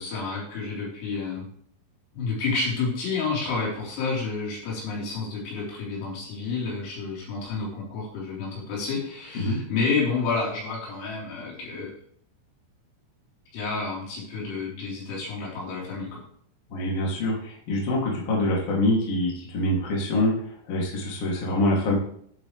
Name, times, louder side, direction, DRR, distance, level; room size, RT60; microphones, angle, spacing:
voice 1, 0.0-1.4 2.1-11.9 13.5-16.2, left 4 dB, 85° left, -5 dB, 6.7 m, -30 dB
voice 2, 16.7-20.3 20.7-21.9, left 1 dB, 35° left, -4 dB, 2.9 m, -25 dB
11.5 x 9.2 x 3.3 m, 0.64 s
omnidirectional pair, 5.8 m